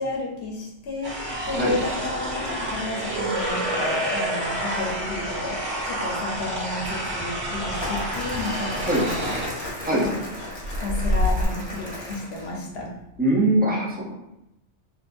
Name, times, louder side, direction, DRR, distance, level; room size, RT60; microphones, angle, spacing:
voice 1, 0.0-12.9, left 2 dB, 65° left, -1 dB, 0.9 m, -32 dB
sound 1, 1.0-9.5, right 1 dB, 65° right, 1.0 m, -29 dB
sound 2, 3.5-4.8 5.1-5.5 5.8-6.0 6.4-11.4, left 1 dB, 40° right, 1.0 m, -32 dB
Crumpling crinkling, 7.8-12.6, left 1 dB, 25° left, 0.9 m, -35 dB
voice 2, 13.2-14.2, right 1 dB, 15° right, -4 dB, 0.3 m, -22 dB
3.4 x 2.6 x 2.5 m, 0.88 s
omnidirectional pair, 1.2 m